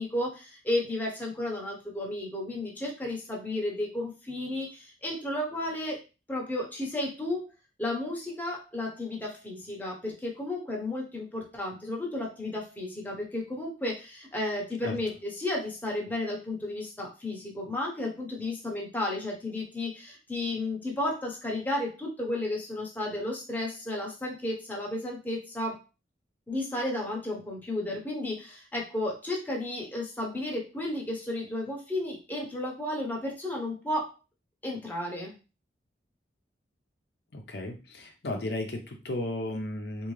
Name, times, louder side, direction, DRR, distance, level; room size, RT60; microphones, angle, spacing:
voice 1, 0.0-6.0 6.3-7.5 7.8-25.8 26.5-34.1 34.6-35.4, left 1 dB, 10° left, -2 dB, 0.9 m, -33 dB
voice 2, 37.3-40.1, left 1 dB, 65° left, 3 dB, 0.7 m, -34 dB
3.7 x 2.7 x 3.2 m, 0.30 s
head